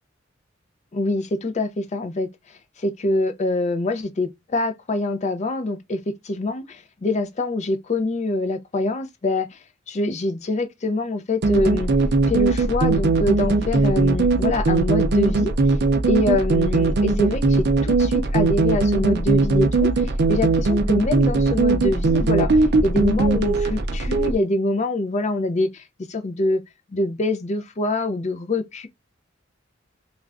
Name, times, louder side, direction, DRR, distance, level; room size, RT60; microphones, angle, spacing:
voice 1, 0.9-2.3 2.8-9.6 9.9-11.9 12.3-15.5 16.1-26.6 26.9-28.9, left 2 dB, 35° left, 0.4 m, -25 dB
sound 1, 11.4-24.3, right 3 dB, 60° right, 0.5 m, -19 dB
2.4 x 2.1 x 3.4 m
head